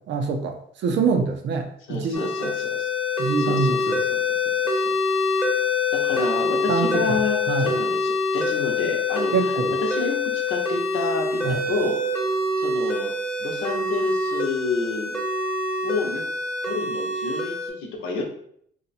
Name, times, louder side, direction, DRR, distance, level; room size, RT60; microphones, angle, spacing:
voice 1, 0.1-2.2 3.2-4.0 6.7-7.2 7.5-7.7 9.3-9.7 11.4-11.6, right 5 dB, 65° right, 5 dB, 0.6 m, -25 dB
voice 2, 1.9-2.9 3.4-5.2 5.9-9.5 9.8-12.0 12.6-13.1 13.4-15.1 15.8-16.2 16.7-18.2, left 3 dB, 80° left, 2 dB, 0.8 m, -30 dB
sound 1, 2.1-17.7, left 3 dB, 5° left, 0.9 m, -25 dB
2.8 x 2.2 x 4.0 m, 0.67 s
cardioid pair, 90°, 20 cm